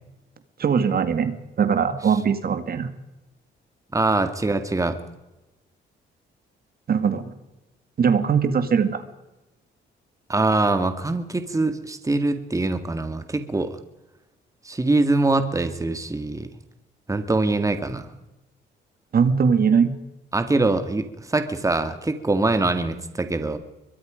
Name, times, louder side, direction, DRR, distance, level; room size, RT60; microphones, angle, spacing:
voice 1, 0.6-2.9 6.9-7.3 8.0-9.0 19.1-19.9, right 6 dB, 50° right, 10 dB, 2.1 m, -21 dB
voice 2, 3.9-5.0 10.3-13.8 14.6-16.5 17.1-18.1 20.3-23.6, right 2 dB, 15° right, 9 dB, 2.0 m, -23 dB
23.5 x 21.5 x 5.2 m, 0.99 s
cardioid pair, 90°, 20 cm